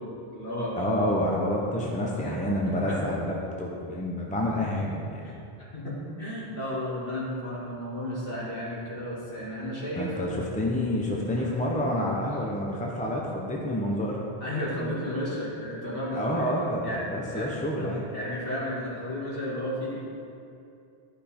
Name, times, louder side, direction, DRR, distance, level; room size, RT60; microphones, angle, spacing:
voice 1, 0.0-1.0 1.8-2.3 2.6-3.0 4.6-4.8 5.2-5.3 5.7-10.1 11.3-11.5 14.4-16.5 16.8-17.0 17.3-17.5 17.8-20.0, left 1 dB, 55° left, -7 dB, 2.3 m, -33 dB
voice 2, 0.8-5.2 10.0-14.2 16.1-18.0, left 1 dB, 10° left, -2 dB, 0.8 m, -28 dB
12.0 x 5.3 x 4.4 m, 2.6 s
omnidirectional pair, 1.1 m